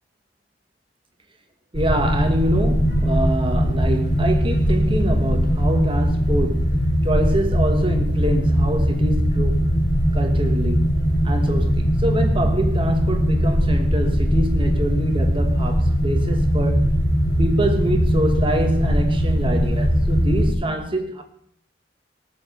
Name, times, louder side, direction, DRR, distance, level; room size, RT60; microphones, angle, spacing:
sound 1, 1.7-20.5, equal, 75° left, 5.0 m, -20 dB
voice 1, 1.7-6.8 7.0-9.6 10.1-10.9 11.2-16.9 17.4-21.2, right 1 dB, 30° right, 1.3 m, -26 dB
18.5 x 7.0 x 6.7 m
head